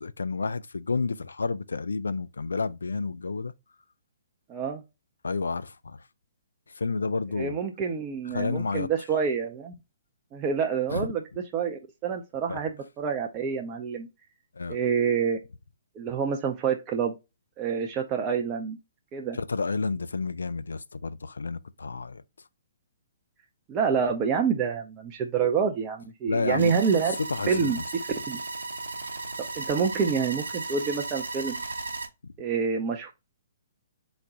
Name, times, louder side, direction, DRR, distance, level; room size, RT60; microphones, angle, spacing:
voice 1, 0.0-3.5 5.2-6.0 6.8-7.6 8.3-8.9 10.9-11.0 12.5-12.6 14.6-14.8 19.3-22.2 26.3-26.7 27.1-27.8, left 4 dB, 70° left, 0.3 m, -30 dB
voice 2, 4.5-4.8 7.3-9.7 10.3-11.2 11.5-14.1 14.7-15.4 16.0-17.1 17.6-18.8 19.1-19.4 23.7-27.1 27.5-27.8 28.3-28.4 29.6-31.6 32.4-33.1, right 6 dB, 25° right, 0.5 m, -27 dB
sound 1, 26.6-32.1, right 3 dB, 70° right, 0.8 m, -35 dB
4.1 x 2.1 x 3.8 m
figure-of-eight pair, 125°, 0 cm